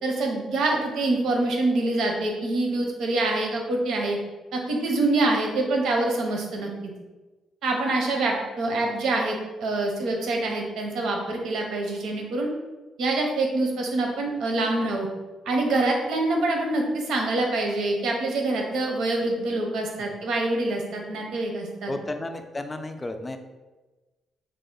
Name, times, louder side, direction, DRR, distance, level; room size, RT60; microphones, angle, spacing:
voice 1, 0.0-4.2 4.5-6.9 7.6-12.5 13.0-15.1 15.5-21.9, right 2 dB, 80° right, 1 dB, 0.6 m, -25 dB
voice 2, 21.9-23.4, left 2 dB, 20° left, 7 dB, 0.3 m, -33 dB
3.4 x 2.0 x 3.8 m, 1.2 s
cardioid pair, 90°, 0 cm